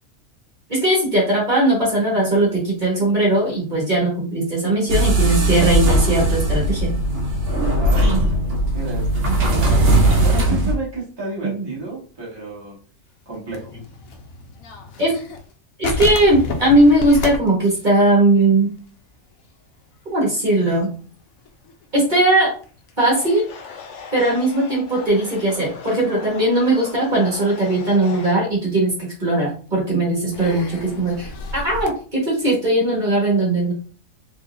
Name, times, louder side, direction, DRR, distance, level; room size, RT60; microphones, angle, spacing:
voice 1, 0.7-6.9 10.5-10.6 11.4-11.7 15.0-15.1 15.8-18.7 20.1-20.9 21.9-22.5 23.0-23.4 24.1-33.7, right 1 dB, 35° right, -4 dB, 1.6 m, -19 dB
sound 1, 4.9-10.7, right 1 dB, 65° right, 1.2 m, -18 dB
voice 2, 7.8-12.8 13.2-13.7, right 3 dB, 20° right, -6 dB, 1.4 m, -32 dB
sound 2, 13.3-15.5 15.8-19.1 19.3-19.5 19.9-20.2 20.5-23.9 24.7-24.8 25.8-26.1 26.6-27.3 27.8-27.9 29.2-29.3 30.3-31.9, left 3 dB, 85° left, 1.1 m, -31 dB
sound 3, 23.0-28.3, left 5 dB, 65° left, 0.9 m, -38 dB
3.8 x 3.3 x 2.6 m, 0.40 s
omnidirectional pair, 1.4 m